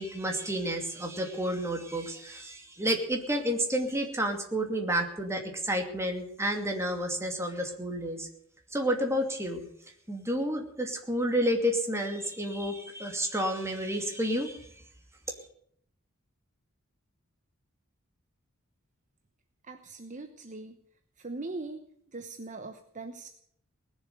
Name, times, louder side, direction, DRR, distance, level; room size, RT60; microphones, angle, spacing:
voice 1, 0.0-8.3 8.7-9.7 10.1-14.7, equal, 15° right, 3 dB, 2.6 m, -30 dB
voice 2, 19.6-20.8 21.2-21.8 22.1-23.3, right 3 dB, 35° right, 7 dB, 1.0 m, -40 dB
19.5 x 7.4 x 9.3 m, 0.67 s
head